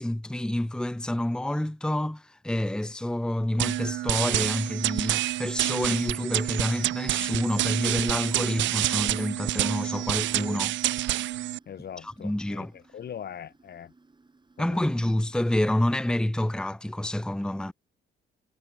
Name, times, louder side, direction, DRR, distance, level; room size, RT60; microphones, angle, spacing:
voice 1, 0.0-10.8 12.0-12.7 14.6-17.7, left 1 dB, 5° left, 1.1 m, -28 dB
sound 1, 3.6-11.6, right 15 dB, 70° right, 0.4 m, -28 dB
sound 2, 7.4-16.3, right 3 dB, 25° right, 7.2 m, -60 dB
voice 2, 11.7-13.9 14.6-14.9, left 9 dB, 55° left, 1.9 m, -41 dB
cardioid pair, 90°, 20 cm